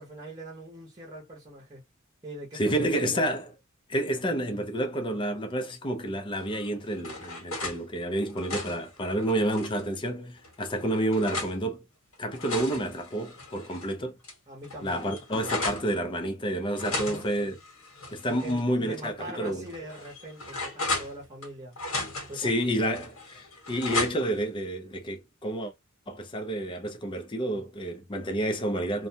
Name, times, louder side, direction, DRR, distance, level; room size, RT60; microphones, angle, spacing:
voice 1, 0.0-1.8 2.2-2.8 14.5-15.1 16.8-17.3 18.3-21.7 22.3-22.5, right 1 dB, 20° right, 0.8 m, -42 dB
voice 2, 2.5-3.5 3.9-11.8 12.2-14.1 14.8-17.6 18.1-19.7 22.3-25.7 26.1-29.1, right 1 dB, 25° left, 0.5 m, -29 dB
sound 1, 6.5-7.8 8.2-9.9 10.4-11.6 12.1-13.9 14.2-14.3 14.6-15.9 16.8-18.6 18.9-19.1 19.7-21.5 21.8-22.5 22.9-24.4, left 2 dB, 90° left, 1.3 m, -35 dB
2.6 x 2.2 x 2.7 m
head